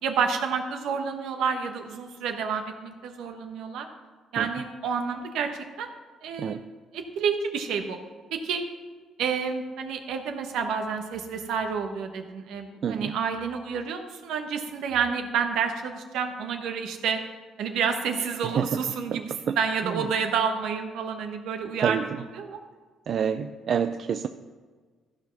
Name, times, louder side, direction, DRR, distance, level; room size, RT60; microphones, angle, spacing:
voice 1, 0.0-3.9 4.3-5.5 5.8-5.9 6.2-8.0 8.3-8.6 9.2-17.2 17.6-22.6, right 6 dB, 80° right, 5 dB, 1.2 m, -29 dB
voice 2, 18.4-18.8 19.1-19.2 19.5-19.6 19.8-19.9 21.8-22.1 23.1-24.3, right 8 dB, 60° right, 8 dB, 0.4 m, -27 dB
14.5 x 4.9 x 5.9 m, 1.5 s
cardioid pair, 80°, 0 cm